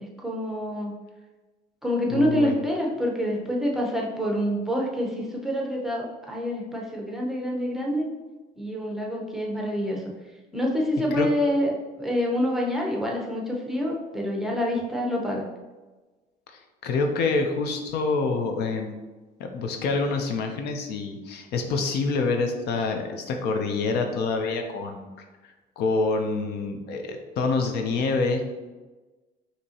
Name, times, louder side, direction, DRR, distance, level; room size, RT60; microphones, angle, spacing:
voice 1, 0.2-0.9 1.8-8.1 8.6-10.0 10.5-11.7 12.0-15.5, equal, ahead, -2 dB, 0.8 m, -26 dB
voice 2, 2.1-2.5 11.1-11.3 16.5-18.9 19.4-25.1 25.4-28.4, left 3 dB, 75° left, 4 dB, 0.6 m, -27 dB
5.2 x 2.9 x 2.9 m, 1.2 s
cardioid pair, 110°, 17 cm